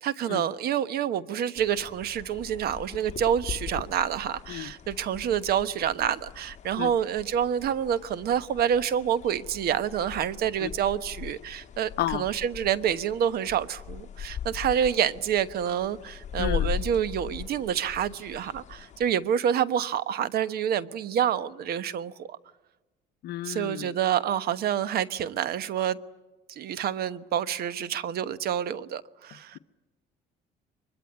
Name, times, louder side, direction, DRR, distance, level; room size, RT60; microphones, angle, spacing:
voice 1, 0.0-22.4 23.4-26.0 26.6-29.6, right 9 dB, 65° right, 1.2 m, -28 dB
sound 1, 1.6-19.1, left 9 dB, 45° left, 1.4 m, -39 dB
voice 2, 16.4-16.7 23.2-23.9, left 14 dB, 75° left, 0.9 m, -32 dB
24.0 x 22.5 x 9.6 m
cardioid pair, 110°, 17 cm